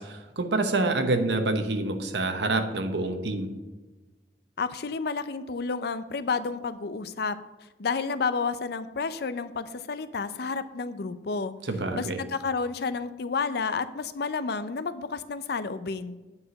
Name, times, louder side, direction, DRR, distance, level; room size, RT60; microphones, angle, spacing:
voice 1, 0.0-3.6 11.6-12.2, right 2 dB, 75° right, 7 dB, 1.0 m, -27 dB
voice 2, 4.6-7.4 7.8-11.5 11.9-16.2, left 4 dB, 60° left, 13 dB, 0.5 m, -30 dB
8.6 x 4.9 x 6.3 m, 1.2 s
head